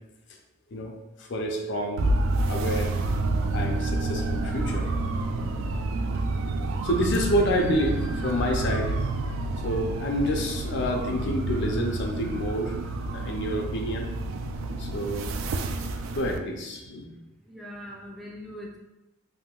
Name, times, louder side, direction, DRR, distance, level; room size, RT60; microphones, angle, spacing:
voice 1, 1.2-2.1 2.5-2.9 3.5-4.9 6.8-9.0 9.6-12.8 13.1-14.1 14.8-15.3 16.1-17.0, equal, 65° left, 2 dB, 0.5 m, -28 dB
sound 1, 2.0-16.4, right 2 dB, 85° right, 0.3 m, -29 dB
voice 2, 17.4-18.8, equal, ahead, -2 dB, 0.4 m, -41 dB
3.5 x 2.5 x 2.3 m, 1.0 s
head